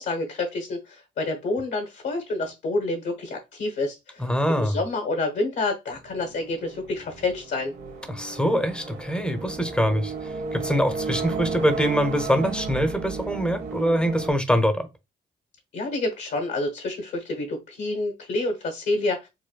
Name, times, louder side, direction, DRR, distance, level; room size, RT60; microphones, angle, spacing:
voice 1, 0.0-4.2 4.5-7.7 15.7-19.3, left 2 dB, 65° left, 1.1 m, -28 dB
voice 2, 4.2-4.8 8.1-10.1 10.5-14.9, equal, 5° left, 0.7 m, -24 dB
sound 1, 5.9-14.3, right 4 dB, 70° right, 1.7 m, -34 dB
4.5 x 2.2 x 2.3 m
cardioid pair, 90°, 20 cm